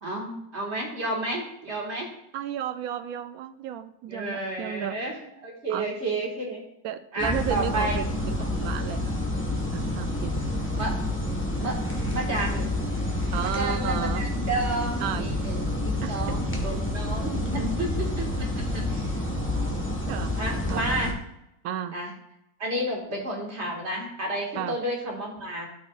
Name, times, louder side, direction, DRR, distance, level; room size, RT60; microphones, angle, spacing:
voice 1, 0.0-2.1 4.1-6.6 7.1-8.0 10.8-10.9 11.6-11.8 12.1-12.8 13.4-19.1 20.4-21.2 21.9-22.1 22.6-25.7, right 1 dB, 35° right, -1 dB, 2.1 m, -31 dB
voice 2, 2.3-5.0 5.7-5.9 6.8-9.2 9.7-10.4 13.3-14.3 15.0-15.4 16.0-16.4 20.1-20.4 20.7-20.9 21.6-21.9 24.5-24.8, right 10 dB, 75° right, 10 dB, 0.8 m, -33 dB
sound 1, 7.2-21.1, left 1 dB, 5° left, 1.2 m, -28 dB
13.0 x 6.1 x 2.5 m, 0.82 s
omnidirectional pair, 2.0 m